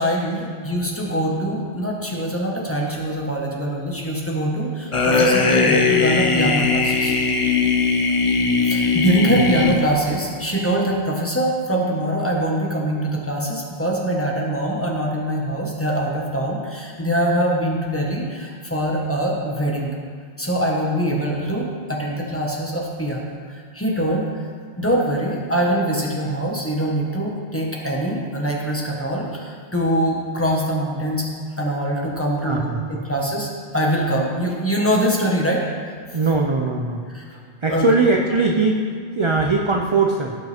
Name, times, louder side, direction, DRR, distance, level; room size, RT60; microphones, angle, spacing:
voice 1, 0.0-7.1 8.7-19.9 20.4-24.5 24.8-31.3 31.6-35.6 37.1-37.4 37.7-37.9, right 1 dB, 10° left, -3 dB, 1.4 m, -23 dB
sound 1, 4.9-10.2, left 4 dB, 35° left, 0.7 m, -19 dB
voice 2, 32.4-33.0 36.1-37.0 37.6-40.4, right 3 dB, 35° right, 1 dB, 0.6 m, -20 dB
17.0 x 5.9 x 3.5 m, 2.1 s
omnidirectional pair, 1.1 m